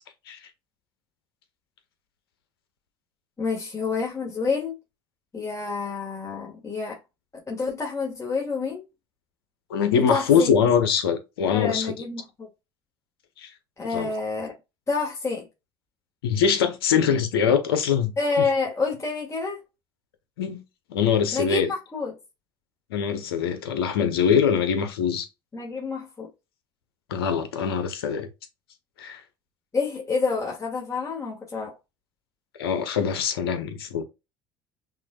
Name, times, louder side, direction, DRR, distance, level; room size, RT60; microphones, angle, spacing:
voice 1, 3.4-4.7 5.3-7.0 7.5-8.8 10.1-10.5 11.5-12.5 13.8-14.5 14.9-15.5 18.2-19.6 21.3-22.1 25.5-26.3 29.7-31.7, left 4 dB, 25° left, 1.6 m, -28 dB
voice 2, 9.7-11.9 13.4-13.5 13.9-14.1 16.2-18.1 20.4-20.6 20.9-21.7 22.9-25.3 27.1-28.3 29.0-29.2 32.6-34.0, left 7 dB, 85° left, 0.8 m, -23 dB
5.9 x 2.6 x 2.3 m
hypercardioid pair, 70°, 12 cm